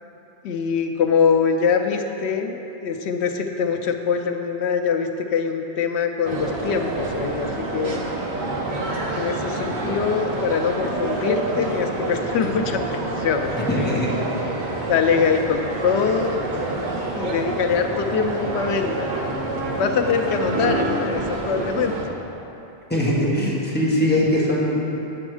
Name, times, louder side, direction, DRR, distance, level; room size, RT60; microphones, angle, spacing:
voice 1, 0.4-2.5 2.8-8.0 9.1-13.9 14.9-16.4 17.2-19.1 19.7-22.0, left 6 dB, 80° left, 5 dB, 0.9 m, -23 dB
sound 1, 6.2-22.0, right 2 dB, 50° right, 1.0 m, -28 dB
sound 2, 8.9-9.3 10.0-17.8 18.1-20.5, right 1 dB, 75° right, 1.3 m, -37 dB
voice 2, 13.7-14.1 22.9-24.8, left 1 dB, 10° left, -7 dB, 1.5 m, -21 dB
7.7 x 6.2 x 4.9 m, 3.0 s
omnidirectional pair, 1.1 m